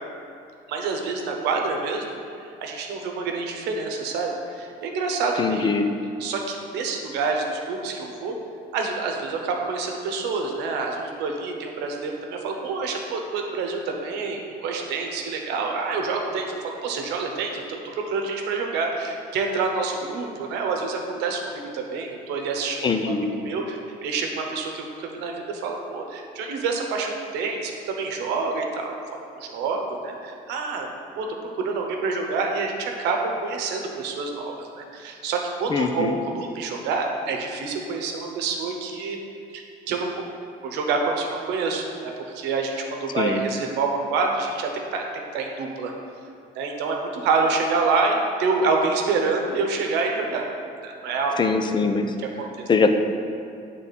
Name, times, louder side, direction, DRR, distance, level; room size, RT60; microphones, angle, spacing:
voice 1, 0.7-2.1 2.4-5.7 6.2-8.3 8.7-23.1 23.4-29.0 29.4-30.9 31.2-31.3 31.6-39.2 39.5-40.1 40.6-45.9 46.5-50.5 50.8-51.4 52.4-52.6, right 4 dB, 90° right, 2 dB, 0.8 m, -27 dB
voice 2, 5.4-5.9 22.8-23.3 35.7-36.2 43.2-43.4 51.4-52.1 52.7-52.9, left 4 dB, 25° left, 6 dB, 0.5 m, -22 dB
8.2 x 3.6 x 4.1 m, 2.5 s
cardioid pair, 110°, 17 cm